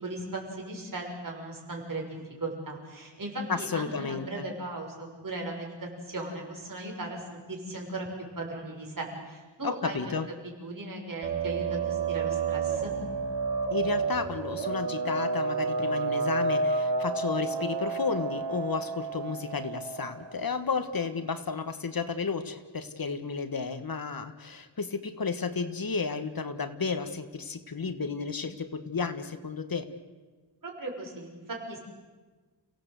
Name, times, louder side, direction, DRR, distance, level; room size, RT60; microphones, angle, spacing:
voice 1, 0.0-8.1 8.4-10.1 10.6-12.9 30.6-31.8, right 2 dB, 50° right, 0 dB, 6.2 m, -37 dB
voice 2, 3.5-4.4 9.6-10.3 13.7-29.9, left 5 dB, 55° left, 10 dB, 1.5 m, -32 dB
sound 1, 11.2-20.5, right 4 dB, 85° right, 2.4 m, -30 dB
29.5 x 17.5 x 8.2 m, 1.3 s
wide cardioid pair, 115°, 43 cm